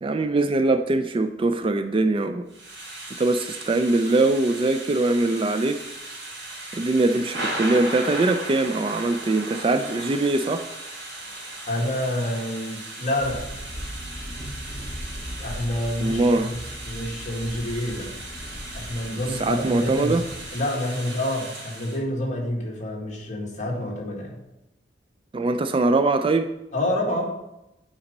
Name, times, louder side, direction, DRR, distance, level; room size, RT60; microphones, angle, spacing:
voice 1, 0.0-2.4 3.2-5.8 6.7-10.6 16.0-16.5 19.4-20.2 25.3-26.5, right 2 dB, 30° right, 9 dB, 0.3 m, -22 dB
Thunder / Rain, 2.5-22.0, right 2 dB, 85° right, 2.5 m, -37 dB
voice 2, 11.7-13.5 15.4-18.1 18.7-20.2 20.5-24.4 26.7-27.4, left 1 dB, 40° left, -2 dB, 1.8 m, -28 dB
sound 1, 13.2-20.5, equal, 10° right, 1.6 m, -38 dB
8.8 x 4.1 x 5.2 m, 0.91 s
head